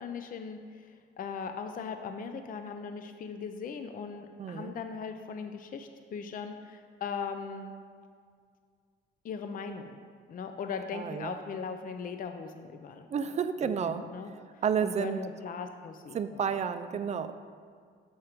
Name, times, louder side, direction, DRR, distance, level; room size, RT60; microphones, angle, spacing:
voice 1, 0.0-7.7 9.2-10.0 10.3-13.1 13.6-16.5, left 5 dB, 45° left, 7 dB, 0.5 m, -39 dB
voice 2, 4.4-4.7 10.9-11.3 13.1-14.0 14.6-15.2 16.1-17.3, right 7 dB, 35° right, 10 dB, 0.4 m, -31 dB
7.1 x 4.3 x 5.0 m, 2.1 s
cardioid pair, 90°, 20 cm